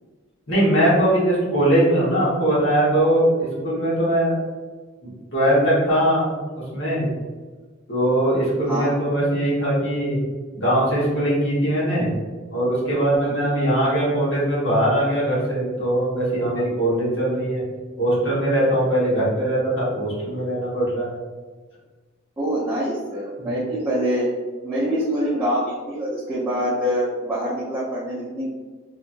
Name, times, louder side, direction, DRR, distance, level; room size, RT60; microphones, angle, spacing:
voice 1, 0.5-4.3 5.0-6.3 6.7-7.1 7.9-10.2 10.5-12.1 12.5-17.6 18.0-21.1, right 1 dB, 65° left, -8 dB, 1.2 m, -21 dB
voice 2, 22.4-24.3 24.6-28.5, equal, 10° right, -11 dB, 0.6 m, -25 dB
2.8 x 2.5 x 2.5 m, 1.4 s
head